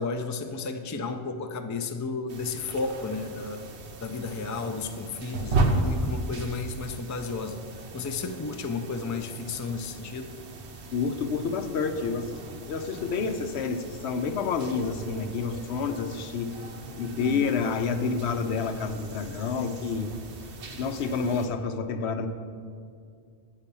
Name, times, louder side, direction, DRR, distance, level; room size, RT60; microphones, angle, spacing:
voice 1, 0.0-3.6 4.0-10.3 17.2-17.5, left 4 dB, 30° left, 7 dB, 0.3 m, -33 dB
sound 1, 2.3-21.5, right 2 dB, 85° right, 1.1 m, -36 dB
voice 2, 10.9-16.6 17.0-20.1 20.8-22.3, left 5 dB, 85° left, 8 dB, 0.9 m, -29 dB
9.0 x 5.7 x 6.8 m, 2.3 s
omnidirectional pair, 1.1 m